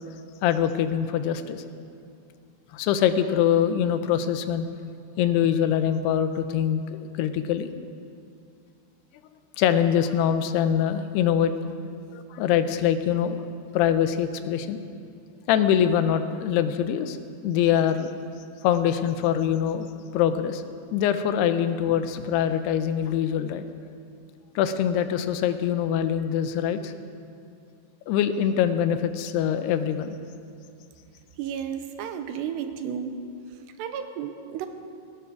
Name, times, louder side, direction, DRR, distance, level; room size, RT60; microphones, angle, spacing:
voice 1, 0.4-1.6 2.7-4.7 5.2-7.7 9.6-11.5 12.1-13.4 13.7-14.8 15.5-17.2 17.4-18.1 18.6-19.9 20.1-20.6 20.9-23.7 24.6-26.9 28.1-30.2, left 9 dB, 80° left, 10 dB, 2.7 m, -24 dB
voice 2, 31.4-33.1 33.8-34.7, right 8 dB, 85° right, 8 dB, 3.1 m, -32 dB
17.0 x 17.0 x 4.7 m, 2.4 s
omnidirectional pair, 4.8 m